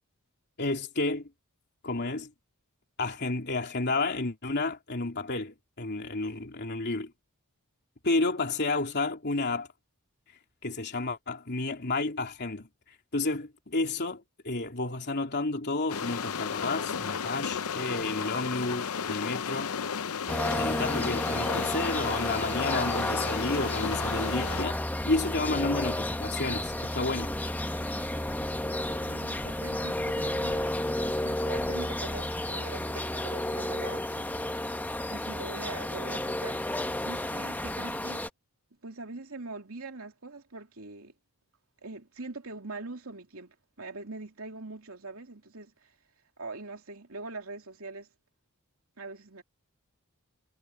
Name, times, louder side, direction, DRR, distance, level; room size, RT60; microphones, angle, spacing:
voice 1, 0.6-1.3 1.8-2.3 3.0-7.1 8.0-9.7 10.6-12.7 13.1-19.7 20.5-24.8 25.0-27.3, left 2 dB, 50° left, 3.2 m, -31 dB
sound 1, 15.9-24.6, left 7 dB, 75° left, 0.7 m, -34 dB
sound 2, 20.3-38.3, left 1 dB, 10° left, 0.9 m, -32 dB
sound 3, 23.9-32.6, equal, 10° right, 5.1 m, -47 dB
voice 2, 28.9-34.4 35.1-36.7 37.0-38.2 38.8-41.1 41.8-45.9 46.4-48.1 49.0-49.4, right 3 dB, 70° right, 3.0 m, -43 dB
head